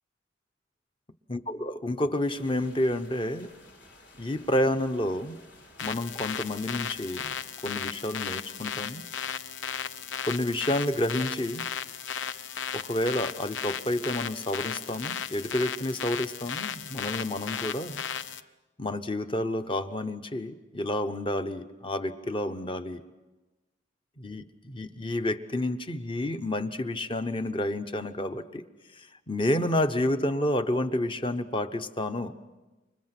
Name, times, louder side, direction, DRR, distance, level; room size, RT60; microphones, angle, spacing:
voice 1, 1.3-3.5 4.2-5.4 5.8-7.3 7.6-9.1 10.3-11.7 12.7-18.0 18.8-23.0 24.2-28.6 29.0-32.3, left 1 dB, 25° left, 10 dB, 0.9 m, -30 dB
sound 1, 2.3-7.5, left 2 dB, 65° left, 4.3 m, -54 dB
sound 2, 5.8-18.4, left 8 dB, 85° left, 0.7 m, -35 dB
29.0 x 25.0 x 6.0 m, 1.1 s
head